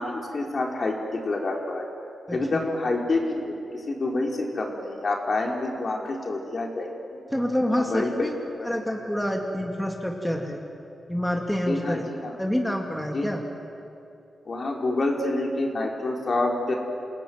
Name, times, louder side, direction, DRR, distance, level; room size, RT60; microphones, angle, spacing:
voice 1, 0.0-1.9 2.3-7.2 7.7-8.3 8.6-8.7 11.7-12.3 13.1-13.3 14.5-16.7, left 2 dB, 45° left, 1 dB, 4.1 m, -27 dB
voice 2, 2.3-2.6 7.3-8.4 8.6-10.6 11.1-12.0 12.4-13.4, equal, 5° left, 1 dB, 2.5 m, -27 dB
28.5 x 18.5 x 9.4 m, 2.7 s
cardioid pair, 95°, 0 cm